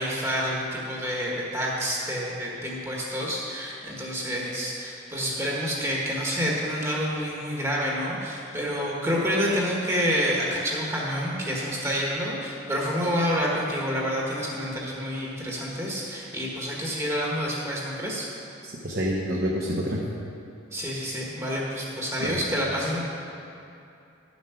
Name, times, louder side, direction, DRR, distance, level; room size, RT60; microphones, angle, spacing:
voice 1, 0.0-18.3 20.7-23.0, equal, 15° right, -4 dB, 1.4 m, -28 dB
voice 2, 18.6-20.0 22.2-22.4, equal, 50° right, -4 dB, 1.0 m, -28 dB
11.0 x 7.3 x 5.8 m, 2.7 s
head